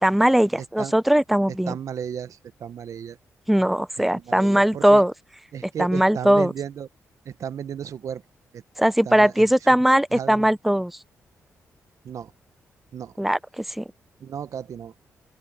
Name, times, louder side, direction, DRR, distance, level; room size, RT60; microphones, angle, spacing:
voice 1, 0.0-1.8 3.5-5.1 5.8-6.5 8.8-10.9 13.2-13.8, right 1 dB, 5° right, 0.7 m, -19 dB
voice 2, 1.7-3.2 4.3-5.0 5.5-6.9 7.3-8.2 9.1-9.4 10.1-10.5 12.0-12.3 12.9-13.1 14.2-14.9, right 8 dB, 70° right, 1.0 m, -34 dB
open air
cardioid pair, 65°, 6 cm